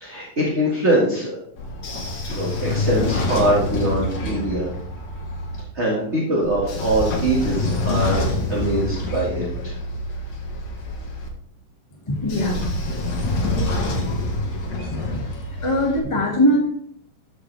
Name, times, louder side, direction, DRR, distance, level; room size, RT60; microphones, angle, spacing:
voice 1, 0.0-1.3 2.3-4.7 5.7-9.8, right 1 dB, 25° right, -4 dB, 1.7 m, -23 dB
Train / Sliding door, 1.6-5.6 6.4-11.3 12.1-16.0, left 2 dB, 60° left, 3.1 m, -26 dB
voice 2, 12.1-12.7 14.9-15.2 15.6-16.6, equal, 15° left, -2 dB, 1.3 m, -21 dB
14.0 x 7.7 x 3.4 m, 0.65 s
omnidirectional pair, 3.7 m